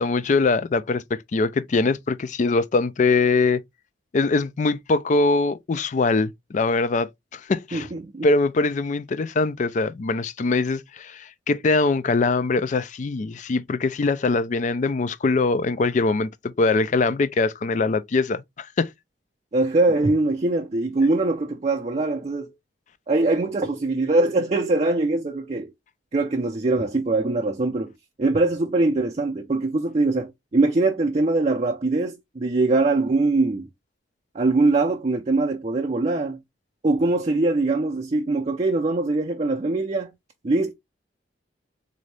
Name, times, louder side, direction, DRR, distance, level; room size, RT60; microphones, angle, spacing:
voice 1, 0.0-3.6 4.1-7.9 8.2-18.9, left 3 dB, 40° left, 0.3 m, -22 dB
voice 2, 7.7-8.3 19.5-22.5 23.1-25.7 26.1-27.9 28.2-33.7 34.3-36.4 36.8-40.1 40.4-40.7, right 2 dB, 35° right, 0.5 m, -22 dB
3.8 x 2.7 x 3.2 m
head